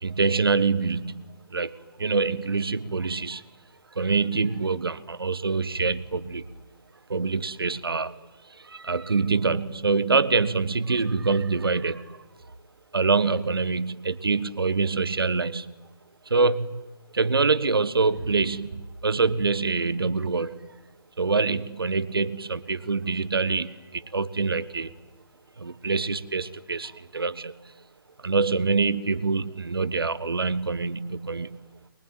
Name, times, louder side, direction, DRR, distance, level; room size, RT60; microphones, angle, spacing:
voice 1, 0.0-1.2 1.5-3.4 3.9-6.5 7.1-8.2 8.5-12.2 12.9-15.7 16.3-16.8 17.1-20.7 21.2-24.9 25.6-27.7 28.2-31.6, right 4 dB, 75° right, 15 dB, 1.5 m, -25 dB
24.5 x 22.0 x 9.1 m, 1.2 s
figure-of-eight pair, 140°, 12 cm